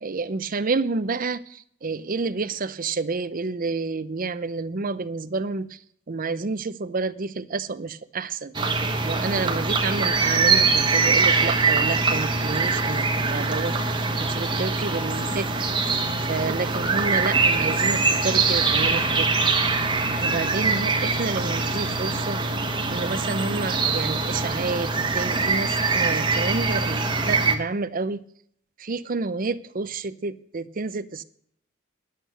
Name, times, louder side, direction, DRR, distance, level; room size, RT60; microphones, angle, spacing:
voice 1, 0.0-5.8 6.1-8.5 9.0-15.7 16.3-19.5 20.2-22.4 22.9-28.2 28.8-31.2, right 4 dB, 40° right, 0.6 m, -29 dB
sound 1, 8.5-27.5, right 4 dB, 20° right, 1.2 m, -23 dB
10.5 x 8.3 x 7.9 m
head